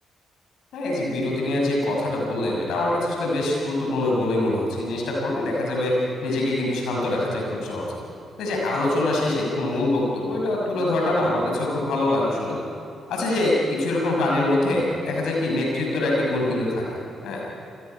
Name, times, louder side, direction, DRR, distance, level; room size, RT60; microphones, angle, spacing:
voice 1, 0.7-7.9 8.4-12.6 13.1-16.8 17.2-17.4, left 1 dB, 60° left, -2 dB, 6.3 m, -24 dB
28.0 x 20.5 x 5.7 m, 2.6 s
figure-of-eight pair, 40°, 0 cm